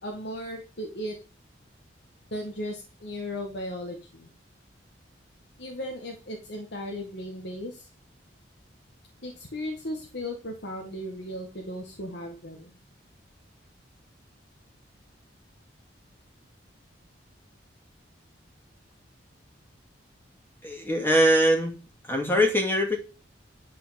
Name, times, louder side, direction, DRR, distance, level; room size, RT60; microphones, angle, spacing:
voice 1, 0.0-1.2 2.3-4.3 5.6-7.9 9.2-12.8, left 1 dB, 60° left, 1 dB, 1.9 m, -36 dB
voice 2, 20.6-21.7 22.0-23.0, equal, 10° left, 2 dB, 2.5 m, -22 dB
11.0 x 5.0 x 7.6 m, 0.34 s
head